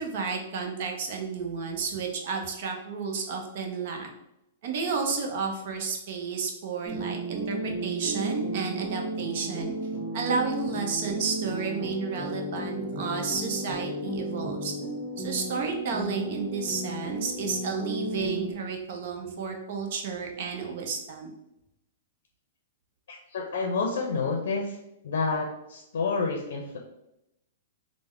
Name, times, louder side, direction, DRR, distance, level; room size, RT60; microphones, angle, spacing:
voice 1, 0.0-4.1 4.6-9.8 10.1-14.7 15.2-21.3, right 5 dB, 60° right, 2 dB, 0.7 m, -32 dB
sound 1, 6.9-18.5, right 1 dB, 5° right, 1.5 m, -34 dB
voice 2, 23.1-24.8 25.0-26.8, left 4 dB, 75° left, 1 dB, 0.5 m, -29 dB
3.4 x 2.1 x 3.2 m, 0.86 s
hypercardioid pair, 125°, 0 cm